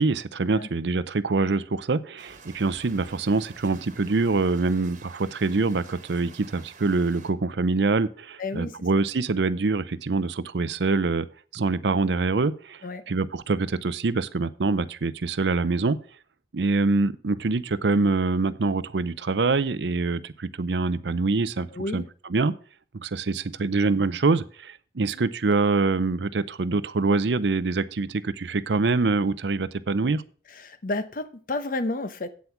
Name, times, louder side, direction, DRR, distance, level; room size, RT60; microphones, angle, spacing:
voice 1, 0.0-11.3 11.5-16.0 16.5-21.7 21.9-22.0 22.3-22.5 22.9-30.2, right 3 dB, 75° right, 15 dB, 0.6 m, -25 dB
sound 1, 2.2-7.3, right 4 dB, 45° right, 1.4 m, -49 dB
voice 2, 8.4-8.9 12.8-13.0 21.7-22.1 30.5-32.3, left 2 dB, 50° left, 12 dB, 0.9 m, -31 dB
8.4 x 7.9 x 6.0 m, 0.41 s
head